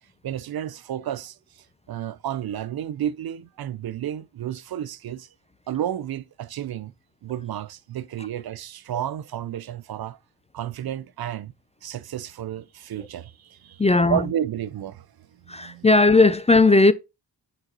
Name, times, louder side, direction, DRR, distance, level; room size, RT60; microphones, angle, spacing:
voice 1, 0.2-5.3 5.7-6.9 7.2-10.2 10.5-11.5 11.8-13.8 14.1-15.9, right 10 dB, 55° right, 0.6 m, -32 dB
voice 2, 13.8-14.2 15.5-16.9, left 3 dB, 15° left, 0.4 m, -16 dB
6.5 x 4.3 x 4.0 m
cardioid pair, 60°, 45 cm